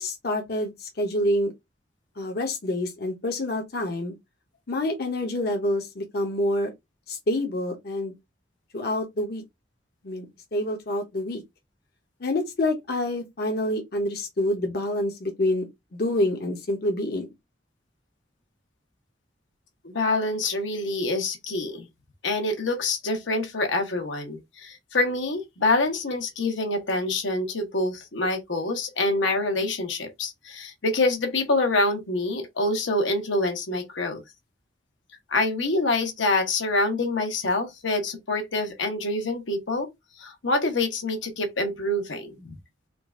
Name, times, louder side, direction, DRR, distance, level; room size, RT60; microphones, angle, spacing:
voice 1, 0.0-1.5 2.2-4.1 4.7-6.7 7.1-8.1 8.7-9.4 10.0-11.4 12.2-17.3, left 1 dB, 55° left, 0.8 m, -27 dB
voice 2, 19.8-21.9 22.2-34.2 35.3-39.9 40.2-42.5, left 2 dB, 90° left, 1.1 m, -26 dB
3.8 x 2.4 x 3.6 m
head